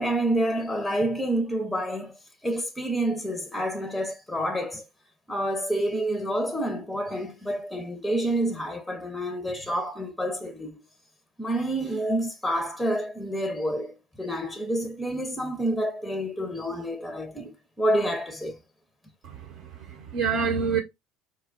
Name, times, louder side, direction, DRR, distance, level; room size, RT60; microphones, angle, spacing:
voice 1, 0.0-2.1 2.4-4.9 5.3-10.8 11.4-18.6, right 1 dB, 5° left, 0.6 m, -28 dB
voice 2, 19.2-20.8, right 6 dB, 60° right, 0.8 m, -28 dB
4.3 x 2.2 x 2.4 m
hypercardioid pair, 85°, 0 cm